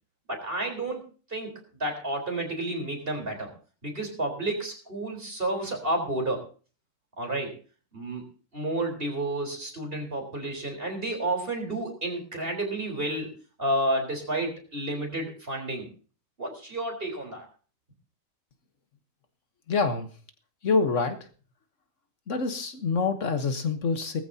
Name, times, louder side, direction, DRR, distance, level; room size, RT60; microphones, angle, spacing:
voice 1, 0.3-3.5 3.8-6.4 7.2-7.5 7.9-13.3 13.6-15.9 16.4-17.4, right 1 dB, 40° right, 2 dB, 4.4 m, -31 dB
voice 2, 19.7-20.1 20.6-21.1 22.3-24.2, left 4 dB, 65° left, 7 dB, 1.5 m, -26 dB
19.0 x 14.0 x 2.8 m, 0.38 s
omnidirectional pair, 1.4 m